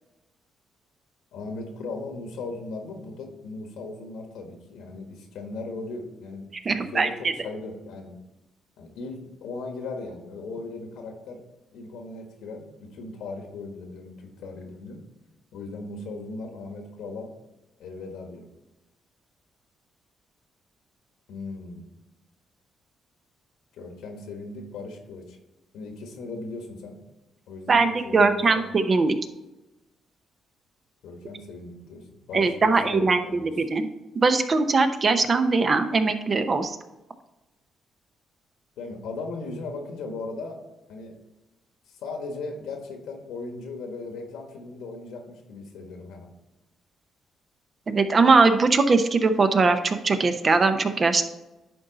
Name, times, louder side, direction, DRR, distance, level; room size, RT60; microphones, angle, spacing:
voice 1, 1.3-8.2 8.8-11.4 11.7-15.0 15.5-17.3 17.8-18.4 21.3-21.9 23.7-25.4 25.7-27.0 27.5-28.7 31.0-33.5 38.8-40.6 40.9-41.1 41.9-46.3, left 3 dB, 85° left, 4 dB, 1.4 m, -37 dB
voice 2, 6.7-7.1 27.7-29.2 32.3-33.9 34.2-36.7 47.9-51.2, right 4 dB, 40° right, 8 dB, 0.8 m, -21 dB
10.5 x 4.0 x 4.0 m, 1.0 s
cardioid pair, 90°, 0 cm